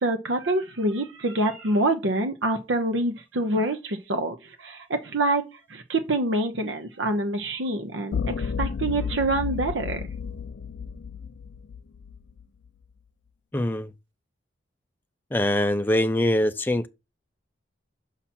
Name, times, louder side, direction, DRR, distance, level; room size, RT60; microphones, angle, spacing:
voice 1, 0.0-5.4 5.7-10.1, right 2 dB, 90° right, 0.8 m, -26 dB
sound 1, 8.1-12.4, left 6 dB, 75° left, 0.4 m, -32 dB
voice 2, 13.5-13.9 15.3-16.9, left 1 dB, 10° left, 0.4 m, -23 dB
5.8 x 5.8 x 4.2 m
head